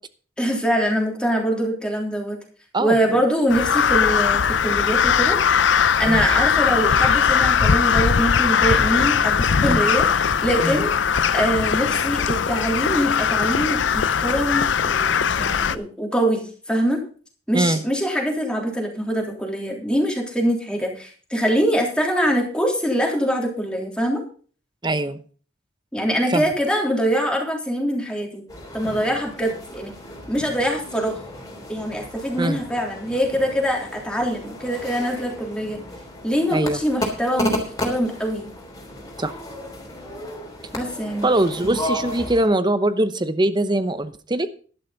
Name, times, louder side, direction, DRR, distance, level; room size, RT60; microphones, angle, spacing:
voice 1, 0.4-2.4 2.8-5.4 6.0-10.1 10.4-10.9 11.3-17.0 17.5-24.2 25.9-28.4 28.7-29.9 30.3-31.2 31.7-35.8 36.2-38.5 40.7-41.3, equal, 5° left, 0 dB, 3.4 m, -23 dB
Crow, 3.5-15.8, left 7 dB, 80° left, 0.6 m, -20 dB
voice 2, 24.8-25.2 26.3-26.4 32.4-32.6 36.5-36.8 39.2-39.3 41.2-44.5, right 1 dB, 25° right, 12 dB, 0.9 m, -22 dB
sound 1, 28.5-42.5, left 1 dB, 20° left, 3.5 m, -33 dB
12.0 x 11.5 x 4.0 m, 0.41 s
head